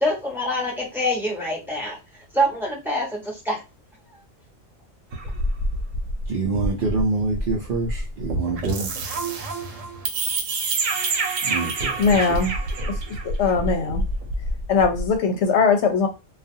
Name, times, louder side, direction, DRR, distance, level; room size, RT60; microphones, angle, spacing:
voice 1, 0.0-2.0 2.3-3.6, equal, ahead, -3 dB, 0.7 m, -25 dB
sound 1, 5.1-15.2, right 2 dB, 85° right, 1.0 m, -27 dB
voice 2, 6.3-8.9 11.4-12.4 12.8-12.9, right 3 dB, 55° right, -1 dB, 0.6 m, -26 dB
voice 3, 12.0-12.5 12.9-14.0 14.7-16.1, left 5 dB, 70° left, 4 dB, 0.8 m, -20 dB
2.4 x 2.3 x 2.6 m, 0.26 s
omnidirectional pair, 1.3 m